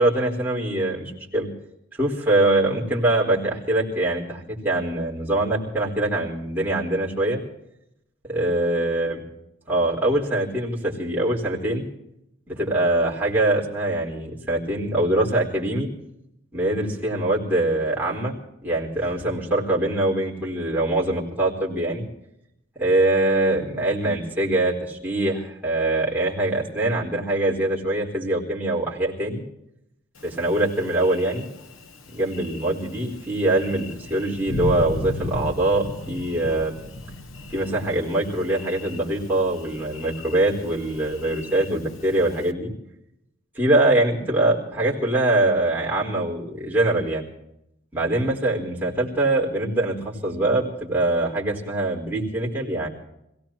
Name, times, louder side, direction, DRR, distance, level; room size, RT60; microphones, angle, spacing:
voice 1, 0.0-1.5 1.9-7.4 8.3-9.2 9.7-11.9 12.5-15.9 16.5-18.3 18.6-22.0 22.8-29.4 30.2-31.5 32.1-36.8 37.5-42.7 43.5-47.2 47.9-52.9, right 2 dB, 10° right, -4 dB, 4.2 m, -23 dB
Thunder, 30.2-42.5, left 1 dB, 90° left, 1.2 m, -36 dB
27.0 x 17.5 x 3.0 m, 0.82 s
head